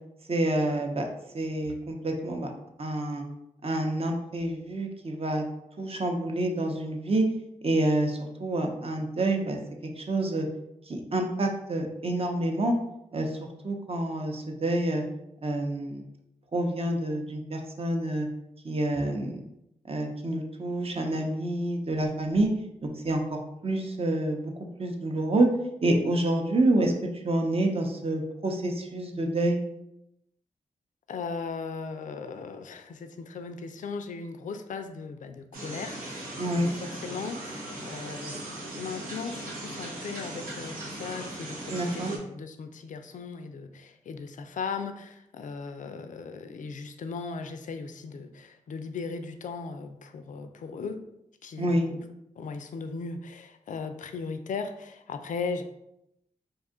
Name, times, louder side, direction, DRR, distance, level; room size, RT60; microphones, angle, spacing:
voice 1, 0.3-1.1 1.3-2.5 2.8-3.2 3.6-5.4 5.8-7.2 7.6-9.6 10.0-10.5 10.9-12.8 13.1-13.4 13.6-15.0 15.4-16.0 16.5-18.3 18.6-19.4 19.9-22.5 22.8-24.5 24.8-25.5 25.8-29.6 36.4-36.7 41.7-42.1 51.6-51.8, right 1 dB, 45° right, 2 dB, 0.7 m, -27 dB
voice 2, 31.1-36.7 37.0-38.4 38.7-51.0 51.4-52.0 52.4-55.6, left 5 dB, 65° left, 8 dB, 0.4 m, -37 dB
sound 1, 35.5-42.2, right 1 dB, 90° right, 0.6 m, -38 dB
2.6 x 2.4 x 3.6 m, 0.82 s
cardioid pair, 45°, 14 cm